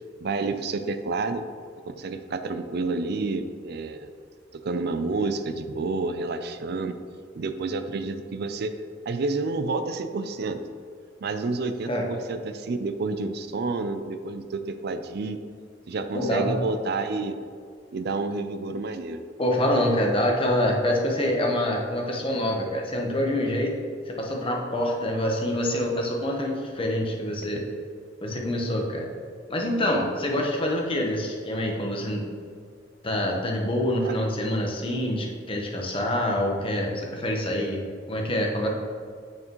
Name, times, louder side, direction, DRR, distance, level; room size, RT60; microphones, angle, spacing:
voice 1, 0.2-1.4 1.8-4.1 4.5-7.0 7.3-8.8 9.1-10.6 11.2-15.4 15.9-17.4 17.9-19.2 34.0-34.2, right 3 dB, 60° right, 9 dB, 0.4 m, -29 dB
voice 2, 16.1-16.6 19.4-23.7 24.1-27.6 28.2-29.1 29.5-32.3 33.0-37.8 38.1-38.7, left 1 dB, 30° left, 0 dB, 1.0 m, -26 dB
8.9 x 6.0 x 3.1 m, 2.1 s
head